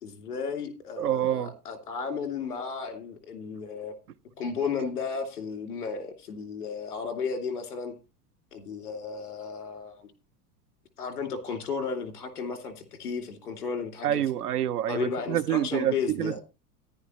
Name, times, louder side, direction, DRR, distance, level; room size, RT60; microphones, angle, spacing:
voice 1, 0.0-3.9 4.4-7.9 8.5-10.1 11.0-14.2 14.9-16.4, left 5 dB, 90° left, 2.9 m, -34 dB
voice 2, 1.0-1.5 14.0-16.4, right 11 dB, 90° right, 0.7 m, -27 dB
14.0 x 10.5 x 3.1 m
hypercardioid pair, 90°, 45 cm